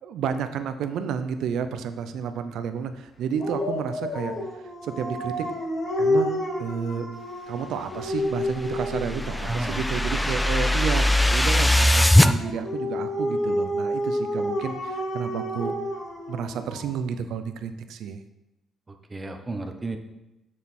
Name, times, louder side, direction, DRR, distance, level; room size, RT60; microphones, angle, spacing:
voice 1, 0.0-5.5 6.0-7.1 7.5-15.7 16.3-18.2, right 7 dB, 80° right, 9 dB, 0.6 m, -31 dB
Dog, 3.4-9.2 12.4-17.0, left 1 dB, 60° left, 2.9 m, -29 dB
sound 1, 8.3-12.3, left 1 dB, 10° left, 0.4 m, -21 dB
voice 2, 9.4-10.6 18.9-20.0, right 2 dB, 25° right, 5 dB, 1.0 m, -34 dB
7.2 x 6.5 x 4.3 m, 0.96 s
cardioid pair, 90°, 0 cm